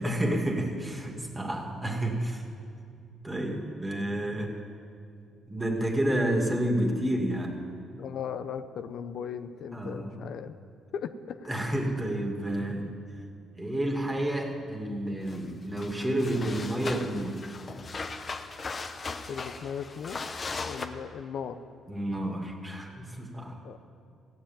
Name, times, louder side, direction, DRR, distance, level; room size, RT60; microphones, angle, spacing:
voice 1, 0.0-2.4 3.2-4.6 5.5-7.6 9.7-10.2 11.5-13.0 13.6-17.4 21.9-23.6, right 1 dB, 15° right, 2 dB, 2.1 m, -30 dB
voice 2, 8.0-10.5 10.9-11.5 19.3-20.2 20.7-21.6 23.6-23.8, left 7 dB, 70° left, 10 dB, 0.6 m, -37 dB
sound 1, 15.3-15.4 15.8-20.9, left 4 dB, 40° left, 0.9 m, -38 dB
15.0 x 7.6 x 8.9 m, 2.5 s
cardioid pair, 90°, 0 cm